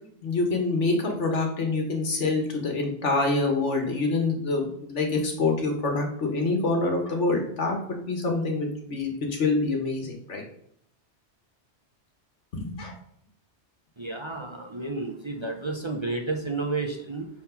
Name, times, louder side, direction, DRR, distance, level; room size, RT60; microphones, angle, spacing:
voice 1, 0.2-10.4 12.5-12.9, left 3 dB, 80° left, 2 dB, 1.8 m, -26 dB
voice 2, 14.0-17.3, right 3 dB, 30° right, 2 dB, 0.7 m, -31 dB
6.0 x 4.3 x 5.7 m, 0.68 s
omnidirectional pair, 1.2 m